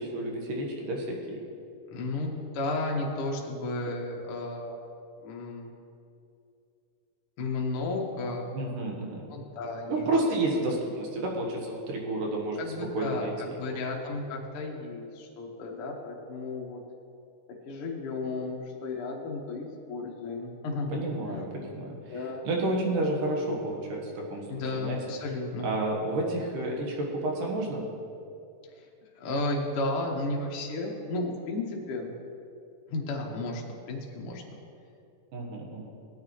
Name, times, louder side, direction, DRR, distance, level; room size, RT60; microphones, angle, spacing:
voice 1, 0.0-1.4 8.5-9.3 9.9-12.6 12.9-13.3 13.7-13.8 20.9-21.5 21.7-22.1 22.4-24.5 24.7-25.0 25.6-27.8 35.3-35.9, right 2 dB, 65° right, 0 dB, 2.6 m, -30 dB
voice 2, 1.9-4.8 5.2-5.7 7.4-8.5 9.3-10.1 12.6-16.8 17.6-21.5 22.1-22.5 24.5-25.7 28.8-28.9 29.2-32.1 32.9-34.4, left 2 dB, 85° left, -1 dB, 1.2 m, -33 dB
17.0 x 9.6 x 3.1 m, 2.6 s
omnidirectional pair, 4.6 m